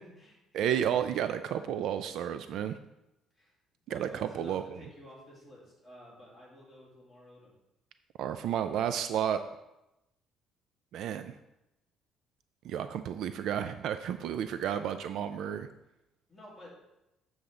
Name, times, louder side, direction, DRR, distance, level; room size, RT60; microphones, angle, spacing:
voice 1, 0.0-0.7 3.3-3.5 3.9-7.5 16.3-16.7, left 1 dB, 5° left, -8 dB, 2.8 m, -52 dB
voice 2, 0.5-2.8 3.9-4.6 8.2-9.4 10.9-11.3 12.6-15.7, right 9 dB, 60° right, 10 dB, 0.3 m, -32 dB
7.9 x 6.9 x 3.7 m, 0.92 s
cardioid pair, 175°, 0 cm